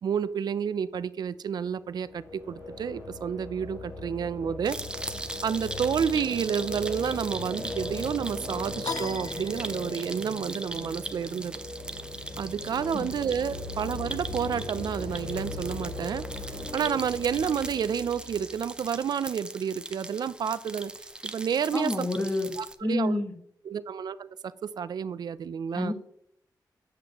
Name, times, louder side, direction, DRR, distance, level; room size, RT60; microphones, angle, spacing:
voice 1, 0.0-4.8 5.4-11.5 12.4-16.2 16.7-20.9 21.2-22.1 22.6-23.2 23.6-25.9, right 7 dB, 70° right, 16 dB, 0.4 m, -30 dB
sound 1, 1.9-18.9, left 2 dB, 90° left, 3.0 m, -38 dB
sound 2, 4.7-22.8, right 2 dB, 10° right, 0.6 m, -40 dB
sound 3, 8.8-10.2, left 6 dB, 60° left, 0.6 m, -38 dB
voice 2, 21.7-22.5 22.8-23.3 25.7-25.9, left 2 dB, 20° left, 3 dB, 1.2 m, -28 dB
8.2 x 7.4 x 3.0 m, 0.72 s
wide cardioid pair, 130°, 7 cm